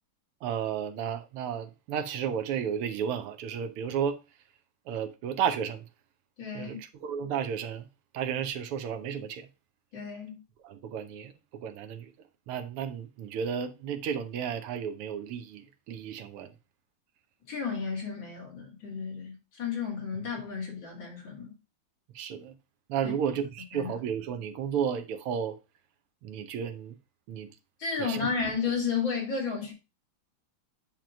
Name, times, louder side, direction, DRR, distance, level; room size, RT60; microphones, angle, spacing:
voice 1, 0.4-4.2 4.9-5.8 6.5-7.9 8.1-9.5 10.6-12.1 12.5-16.5 22.2-22.5 22.9-25.6 26.2-27.0 27.3-27.5 28.0-28.2, right 8 dB, 85° right, 1.8 m, -33 dB
voice 2, 6.4-6.8 9.9-10.4 17.5-21.6 23.0-23.1 23.7-23.9 27.8-29.7, left 5 dB, 60° left, 3.3 m, -32 dB
9.0 x 3.0 x 5.0 m
omnidirectional pair, 2.4 m